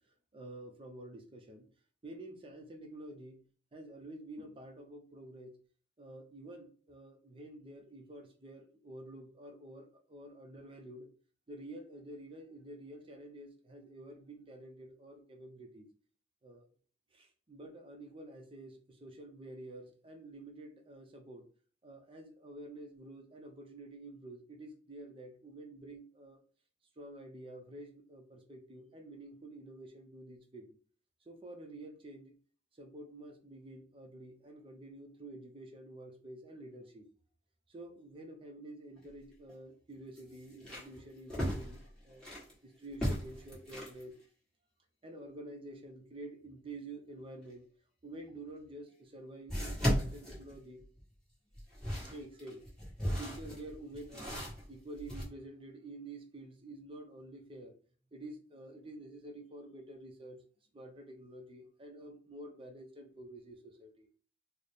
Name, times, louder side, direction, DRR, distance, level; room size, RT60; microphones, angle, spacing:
voice 1, 0.3-1.7 2.0-3.4 3.7-5.6 6.0-11.1 11.5-15.9 16.4-16.6 17.1-21.5 21.8-26.4 27.0-30.7 31.3-32.3 32.8-37.1 37.7-44.1 45.0-47.7 48.0-50.8 52.0-52.6 53.0-54.4 54.7-57.8 58.1-60.4 60.7-64.1, right 1 dB, 30° right, 3 dB, 0.5 m, -49 dB
sound 1, 39.0-39.1 39.5-39.6 40.1-42.5 42.9-44.0 48.3-48.4 49.5-51.1 51.5-55.2, equal, 5° left, 1.3 m, -36 dB
4.0 x 2.0 x 3.3 m, 0.43 s
head